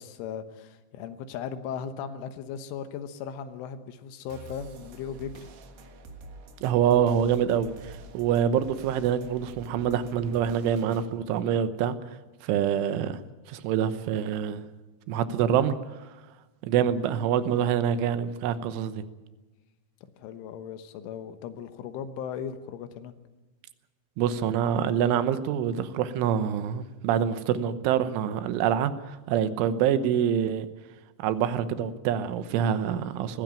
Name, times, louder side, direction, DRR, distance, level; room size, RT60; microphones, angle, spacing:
voice 1, 0.0-5.5 20.2-23.1, left 7 dB, 85° left, 10 dB, 3.7 m, -37 dB
sound 1, 4.3-11.1, right 3 dB, 60° right, 2.5 m, -47 dB
voice 2, 6.6-12.0 12.4-13.2 13.5-14.6 15.1-15.8 16.6-19.1 24.2-30.7 31.2-33.4, right 9 dB, 85° right, 12 dB, 3.5 m, -26 dB
20.5 x 15.5 x 9.0 m, 1.2 s
omnidirectional pair, 5.5 m